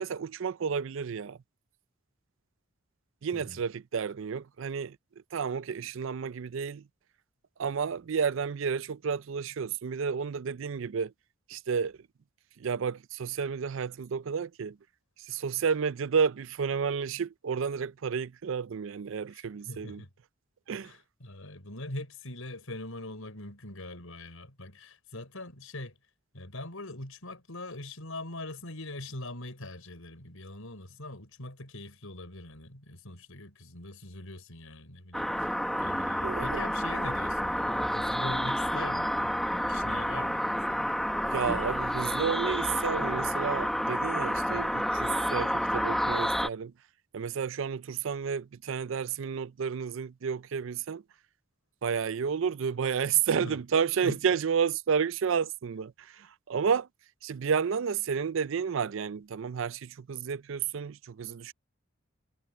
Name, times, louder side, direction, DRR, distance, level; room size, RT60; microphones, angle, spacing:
voice 1, 0.0-1.4 3.2-5.0 5.3-6.8 7.6-11.1 11.5-12.0 12.6-14.8 15.3-20.0 20.7-20.9 36.2-36.6 41.2-46.7 47.1-51.0 51.8-56.9 57.2-61.5, right 6 dB, 65° right, 0.4 m, -31 dB
voice 2, 3.3-3.6 19.3-20.1 20.8-25.9 26.3-41.0 53.3-53.6 54.0-54.2, left 2 dB, 75° left, 5.0 m, -42 dB
sound 1, 35.1-46.5, equal, ahead, 1.1 m, -29 dB
head